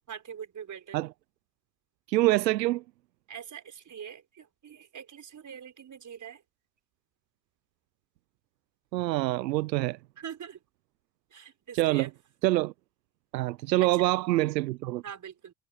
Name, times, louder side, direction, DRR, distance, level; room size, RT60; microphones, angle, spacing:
voice 1, 0.1-1.0 3.3-6.4 10.2-10.6 11.3-12.1 13.9-14.1 15.0-15.5, right 8 dB, 35° right, 5.9 m, -43 dB
voice 2, 2.1-2.8 8.9-10.0 11.7-12.1 12.4-12.7 13.3-15.0, right 17 dB, 90° right, 0.8 m, -25 dB
hypercardioid pair, 80°, 49 cm